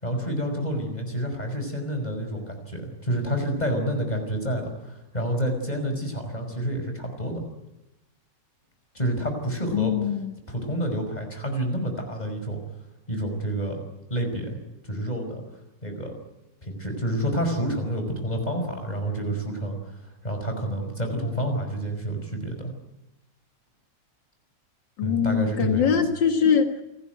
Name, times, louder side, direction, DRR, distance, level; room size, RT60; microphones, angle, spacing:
voice 1, 0.0-7.4 8.9-9.9 10.5-12.6 13.1-13.8 14.1-14.6 14.8-15.4 15.8-16.1 16.6-20.0 20.2-22.7 25.0-25.9, right 1 dB, 20° left, 5 dB, 5.6 m, -28 dB
voice 2, 9.7-10.3 25.0-26.8, left 7 dB, 80° left, 6 dB, 2.4 m, -22 dB
29.0 x 15.5 x 9.3 m, 0.98 s
omnidirectional pair, 1.9 m